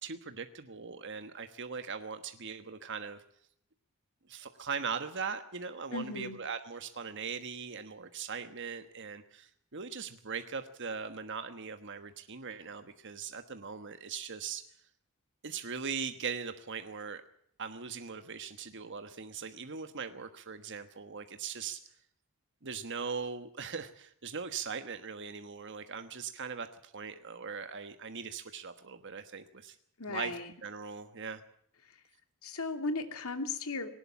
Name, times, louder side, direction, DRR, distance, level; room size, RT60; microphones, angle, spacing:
voice 1, 0.0-3.2 4.3-14.6 15.4-17.2 17.6-21.8 22.6-29.8 30.1-31.4, right 6 dB, 55° right, 8 dB, 1.3 m, -40 dB
voice 2, 5.9-6.4 30.0-30.5 32.4-33.9, left 3 dB, 75° left, 7 dB, 2.8 m, -36 dB
20.0 x 19.0 x 7.1 m, 0.68 s
head